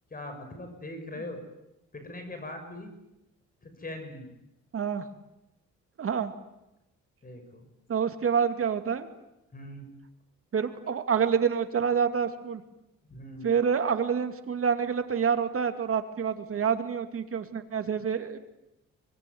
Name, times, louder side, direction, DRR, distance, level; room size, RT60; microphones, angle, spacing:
voice 1, 0.1-1.4 1.9-2.9 3.6-4.3 7.2-7.7 9.5-9.8 13.1-13.5, left 1 dB, 30° left, 6 dB, 6.3 m, -41 dB
voice 2, 4.7-5.1 6.0-6.3 7.9-9.1 10.5-12.6 13.4-18.4, right 7 dB, 45° right, 7 dB, 2.6 m, -27 dB
24.0 x 21.5 x 9.5 m, 0.91 s
cardioid pair, 90°, 30 cm